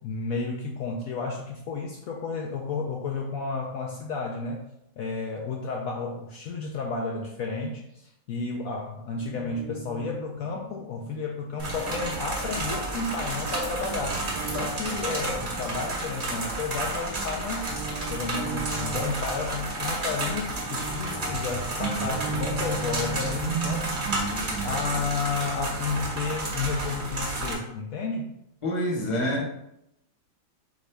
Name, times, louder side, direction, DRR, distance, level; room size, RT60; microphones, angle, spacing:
voice 1, 0.0-4.6 5.0-17.8 18.1-24.2 24.6-28.3, left 4 dB, 70° left, 0 dB, 0.9 m, -32 dB
Guitar, 9.1-16.8 17.1-27.6, right 4 dB, 75° right, 1.2 m, -38 dB
sound 1, 11.6-27.5, right 2 dB, 40° right, 0.9 m, -31 dB
voice 2, 28.6-29.4, left 1 dB, 25° left, -2 dB, 0.8 m, -26 dB
4.0 x 3.6 x 3.3 m, 0.80 s
omnidirectional pair, 1.7 m